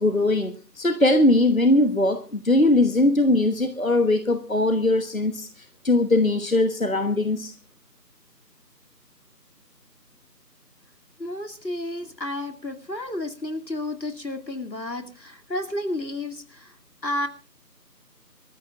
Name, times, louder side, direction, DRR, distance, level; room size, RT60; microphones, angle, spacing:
voice 1, 0.0-5.5 5.8-7.5, left 2 dB, 55° left, 9 dB, 1.2 m, -20 dB
voice 2, 11.2-16.7 17.0-17.3, left 1 dB, 85° left, 6 dB, 2.5 m, -31 dB
26.5 x 14.0 x 2.4 m, 0.33 s
figure-of-eight pair, 175°, 50 cm